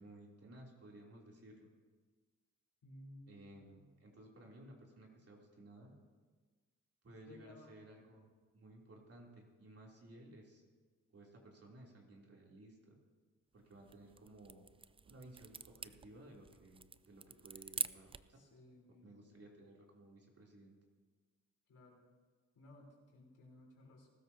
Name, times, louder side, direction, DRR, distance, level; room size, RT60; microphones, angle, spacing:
voice 1, 0.0-1.7 3.3-5.9 7.0-8.3 8.5-10.6 11.1-13.0 13.5-14.6 15.0-18.4 19.0-20.8, right 1 dB, 50° right, -2 dB, 3.3 m, -57 dB
voice 2, 2.8-3.6 7.3-7.8 18.3-19.3 21.7-22.1 22.5-24.1, left 1 dB, 70° left, -2 dB, 4.0 m, -58 dB
sound 1, 13.7-18.4, right 5 dB, 20° right, 0.3 m, -46 dB
20.0 x 13.0 x 2.9 m, 1.4 s
cardioid pair, 75°, 32 cm